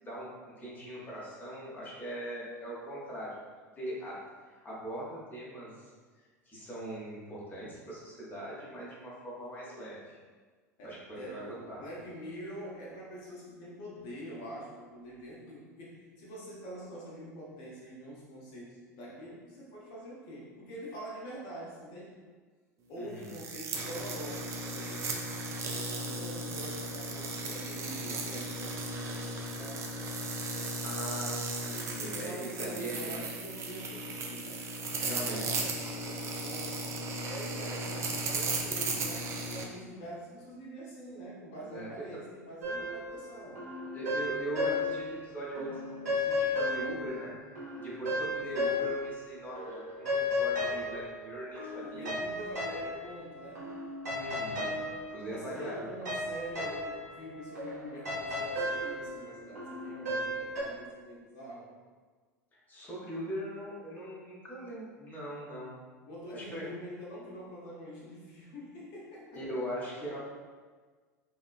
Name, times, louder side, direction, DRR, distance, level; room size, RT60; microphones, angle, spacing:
voice 1, 0.0-3.4 3.8-4.2 4.6-5.9 6.5-10.2 10.8-11.8 22.9-23.3 30.8-33.2 35.0-35.5 41.6-42.2 43.9-52.1 54.1-54.8 55.1-55.8 62.5-65.9 66.3-66.7 69.3-70.2, right 1 dB, 20° left, -6 dB, 0.8 m, -41 dB
voice 2, 10.8-22.1 22.9-25.3 25.6-30.1 32.0-34.7 34.9-36.9 37.2-43.6 51.8-53.8 55.2-61.7 66.0-69.6, equal, 50° left, -5 dB, 0.7 m, -45 dB
sound 1, 23.2-39.6, right 2 dB, 30° right, 0.4 m, -36 dB
sound 2, 42.6-45.2 45.6-49.3 49.6-60.6, left 2 dB, 75° right, 1.0 m, -35 dB
2.8 x 2.4 x 2.4 m, 1.5 s
figure-of-eight pair, 80°, 9 cm